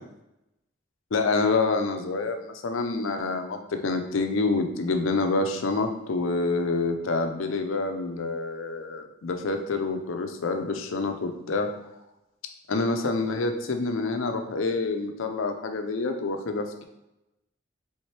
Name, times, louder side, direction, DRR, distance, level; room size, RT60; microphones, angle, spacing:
voice 1, 1.1-11.7 12.7-16.8, left 3 dB, 85° left, 6 dB, 0.6 m, -27 dB
4.4 x 3.5 x 3.2 m, 0.92 s
head